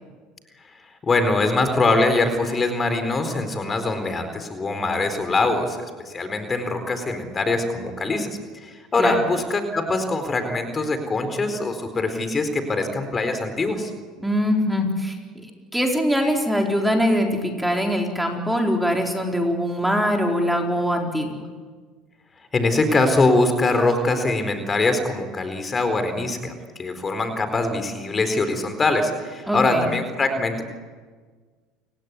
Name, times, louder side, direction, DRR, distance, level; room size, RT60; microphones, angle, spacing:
voice 1, 1.0-5.8 6.1-13.9 22.5-26.5 26.8-30.6, left 2 dB, 25° left, 8 dB, 4.3 m, -23 dB
voice 2, 14.2-15.5 15.7-21.3 29.5-29.9, equal, 5° right, 2 dB, 4.2 m, -22 dB
29.5 x 17.0 x 9.6 m, 1.5 s
hypercardioid pair, 85°, 0 cm